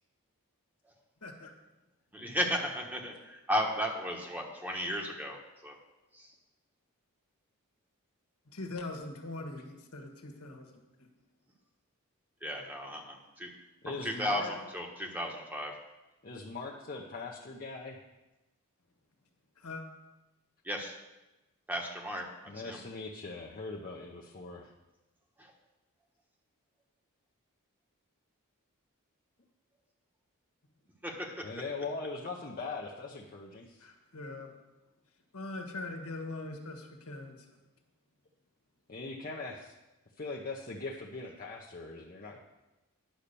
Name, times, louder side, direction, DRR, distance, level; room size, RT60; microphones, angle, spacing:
voice 1, 1.2-1.5 8.5-11.1 19.6-19.8 33.8-34.5 35.3-37.4, left 2 dB, 85° left, 3 dB, 1.5 m, -42 dB
voice 2, 2.1-5.8 6.1-6.3 12.4-13.5 13.9-15.7 20.6-20.9 21.7-22.8 25.4-25.5 31.0-31.5, equal, 10° right, 1 dB, 1.2 m, -35 dB
voice 3, 13.8-14.5 16.2-18.0 22.5-24.7 31.4-33.8 38.9-39.7 40.2-42.4, left 3 dB, 40° left, -2 dB, 0.8 m, -40 dB
10.5 x 5.6 x 6.8 m, 1.0 s
head